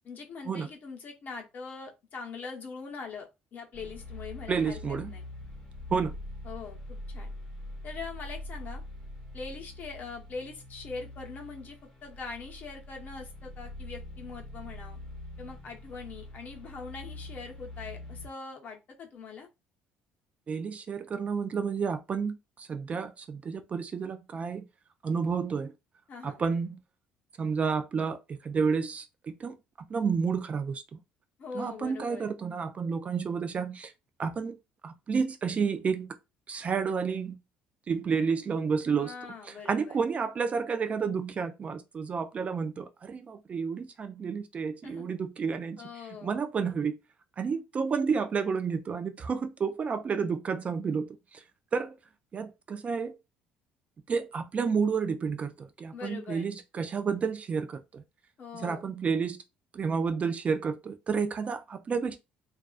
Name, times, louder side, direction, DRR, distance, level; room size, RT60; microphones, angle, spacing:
voice 1, 0.0-4.8 5.1-5.2 6.4-7.3 7.8-8.8 9.3-11.8 12.0-15.0 15.4-19.5 26.1-26.4 31.4-32.3 39.0-40.0 44.8-45.1 45.8-46.3 55.9-56.5 58.4-58.9, left 4 dB, 45° left, 0.7 m, -42 dB
sound 1, 3.7-18.3, left 1 dB, 20° left, 0.9 m, -43 dB
voice 2, 4.5-5.1 5.9-6.1 20.5-24.7 25.0-25.7 26.2-26.8 27.4-29.5 29.9-31.0 31.5-33.9 34.2-34.6 34.8-36.2 36.5-37.4 37.9-39.1 39.5-45.8 46.2-47.0 47.4-51.4 51.7-52.0 52.3-53.2 54.1-58.0 58.5-59.4 59.7-62.2, right 5 dB, 35° right, 0.3 m, -30 dB
2.3 x 2.2 x 2.4 m
cardioid pair, 95°, 4 cm